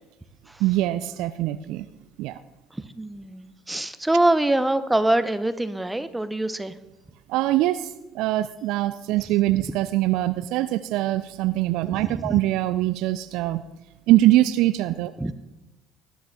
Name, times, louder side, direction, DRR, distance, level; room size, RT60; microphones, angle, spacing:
voice 1, 0.6-1.8 2.2-2.4 7.3-13.6 14.1-15.1, right 15 dB, 65° right, 13 dB, 0.3 m, -23 dB
voice 2, 2.7-6.7 12.0-12.4 15.2-15.3, right 1 dB, 10° right, 11 dB, 0.8 m, -24 dB
19.5 x 10.5 x 2.3 m, 1.0 s
figure-of-eight pair, 55°, 0 cm